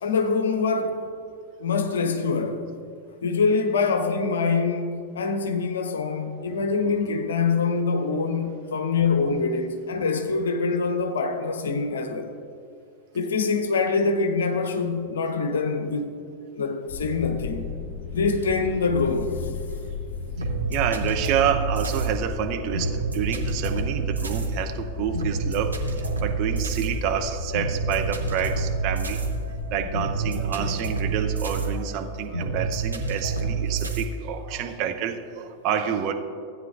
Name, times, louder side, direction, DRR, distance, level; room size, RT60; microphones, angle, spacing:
voice 1, 0.0-1.0 1.6-2.6 3.2-12.3 13.1-16.1 16.5-17.7 18.1-19.5, left 4 dB, 65° left, 0.8 m, -24 dB
sound 1, 16.9-30.1, left 5 dB, 40° left, 1.8 m, -35 dB
voice 2, 20.4-29.2 29.7-36.1, right 8 dB, 40° right, 0.7 m, -28 dB
sound 2, 20.4-34.0, right 4 dB, 80° right, 1.0 m, -28 dB
15.5 x 9.0 x 2.5 m
figure-of-eight pair, 90°, 0 cm